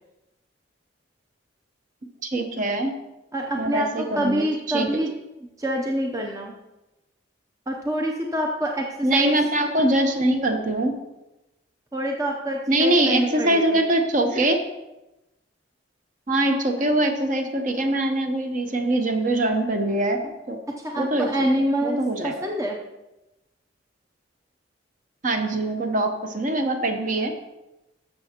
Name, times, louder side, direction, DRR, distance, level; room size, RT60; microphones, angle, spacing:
voice 1, 2.2-2.9 3.6-5.0 9.0-10.9 12.7-14.6 16.3-20.2 20.5-20.6 21.0-21.3 21.6-22.5 25.2-27.3, right 1 dB, 45° right, 5 dB, 0.9 m, -23 dB
voice 2, 3.3-5.1 5.6-6.5 7.7-9.4 11.9-13.8 20.7-22.8, right 1 dB, 15° right, 1 dB, 0.6 m, -26 dB
13.0 x 6.7 x 2.9 m, 0.98 s
head